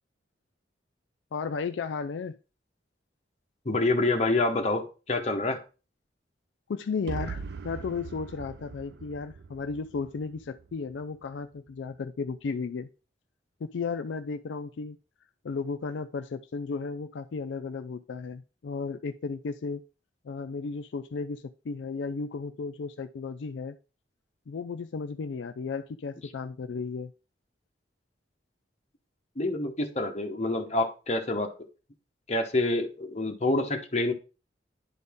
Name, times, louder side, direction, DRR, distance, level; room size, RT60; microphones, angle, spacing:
voice 1, 1.3-2.4 6.7-12.9 13.6-15.0 15.4-19.8 20.2-23.8 24.5-27.1, left 4 dB, 80° left, 0.4 m, -34 dB
voice 2, 3.6-5.6 29.4-31.5 32.3-34.1, left 2 dB, 35° left, 1.0 m, -27 dB
sound 1, 7.1-11.0, right 5 dB, 60° right, 0.5 m, -40 dB
10.5 x 4.0 x 3.5 m
head